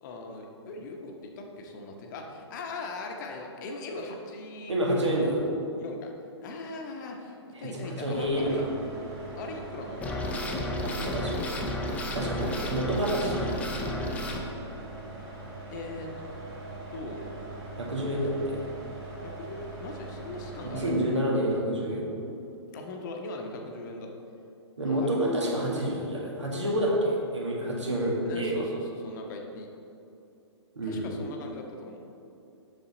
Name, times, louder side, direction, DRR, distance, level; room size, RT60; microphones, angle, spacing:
voice 1, 0.0-4.7 5.8-6.1 6.4-8.7 9.4-11.0 15.7-16.1 16.9-17.3 19.2-20.9 22.7-24.1 24.8-25.3 28.0-29.7 30.8-32.0, left 3 dB, 40° left, 2 dB, 0.9 m, -40 dB
voice 2, 4.7-5.4 7.5-8.7 11.0-11.3 12.1-13.7 17.8-18.6 20.7-22.1 24.8-28.6 30.8-31.1, right 1 dB, 80° right, -3 dB, 1.8 m, -28 dB
sound 1, 8.1-21.1, right 3 dB, 30° right, 1.5 m, -42 dB
sound 2, 10.0-14.4, left 1 dB, 10° left, 0.6 m, -32 dB
7.5 x 6.0 x 3.9 m, 2.8 s
figure-of-eight pair, 120°, 15 cm